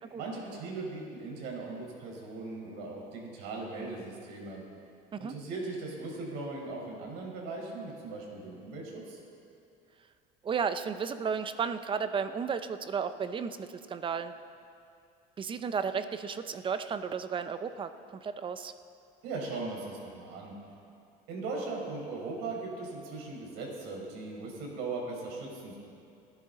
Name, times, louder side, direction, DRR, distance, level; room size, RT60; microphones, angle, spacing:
voice 1, 0.2-4.6 5.2-9.2 19.2-20.5 21.3-25.8, right 3 dB, 75° right, -1 dB, 4.7 m, -39 dB
voice 2, 10.4-14.3 15.4-17.9 18.2-18.7, right 6 dB, 30° right, 11 dB, 0.7 m, -33 dB
27.0 x 10.5 x 3.9 m, 2.5 s
cardioid pair, 125°, 18 cm